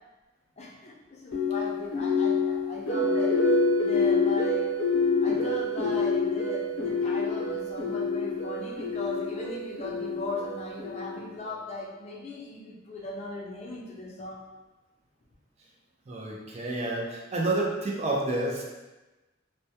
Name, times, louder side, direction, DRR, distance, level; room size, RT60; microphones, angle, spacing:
voice 1, 0.6-3.4 3.8-4.7 5.2-14.4, left 2 dB, 35° left, -3 dB, 0.4 m, -38 dB
sound 1, 1.3-11.4, left 3 dB, 85° left, 0.6 m, -27 dB
voice 2, 16.1-18.6, right 2 dB, 35° right, -3 dB, 0.4 m, -29 dB
2.2 x 2.1 x 2.7 m, 1.1 s
head